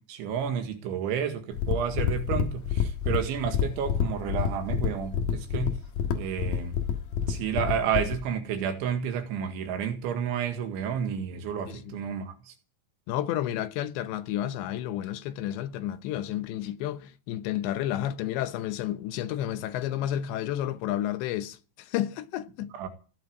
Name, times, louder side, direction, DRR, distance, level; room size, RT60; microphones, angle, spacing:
voice 1, 0.1-5.8 6.1-6.8 7.3-12.5 22.8-22.9, right 8 dB, 85° right, 4.3 m, -31 dB
sound 1, 1.5-8.2, left 7 dB, 65° left, 3.0 m, -28 dB
voice 2, 11.7-12.0 13.1-22.7, left 12 dB, 80° left, 3.2 m, -31 dB
16.5 x 8.1 x 9.7 m
omnidirectional pair, 5.2 m